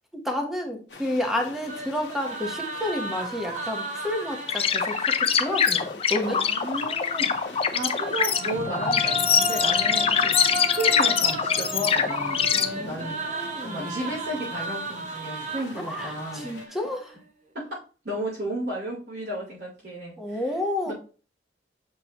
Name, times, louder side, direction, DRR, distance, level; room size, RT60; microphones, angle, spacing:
voice 1, 0.2-6.4 12.6-14.0 15.8-17.1 20.2-20.9, left 1 dB, ahead, 2 dB, 1.1 m, -30 dB
sound 1, 0.9-16.7, left 2 dB, 85° left, 1.0 m, -43 dB
sound 2, 1.7-5.7 7.5-17.0, right 1 dB, 40° right, 0.9 m, -34 dB
sound 3, 4.5-12.6, left 7 dB, 35° left, 0.5 m, -23 dB
voice 2, 6.2-12.4 12.8-16.8 17.5-20.5 20.9-21.0, right 1 dB, 70° right, -10 dB, 3.7 m, -34 dB
7.6 x 4.7 x 3.0 m, 0.37 s
head